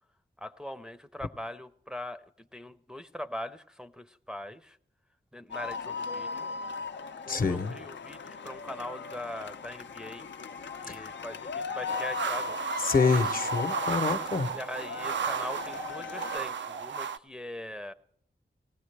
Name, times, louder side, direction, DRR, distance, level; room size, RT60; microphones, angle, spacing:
voice 1, 0.4-4.8 5.3-6.5 7.3-10.3 10.8-12.6 14.5-17.9, left 1 dB, 5° right, 8 dB, 0.6 m, -41 dB
sound 1, 5.5-16.4, left 5 dB, 80° left, 0.6 m, -38 dB
voice 2, 7.3-7.7 10.9-11.0 12.8-14.5, left 4 dB, 50° left, 10 dB, 0.8 m, -27 dB
sound 2, 11.9-17.2, right 7 dB, 85° right, 0.5 m, -34 dB
18.5 x 16.0 x 3.3 m, 0.68 s
cardioid pair, 55°, 18 cm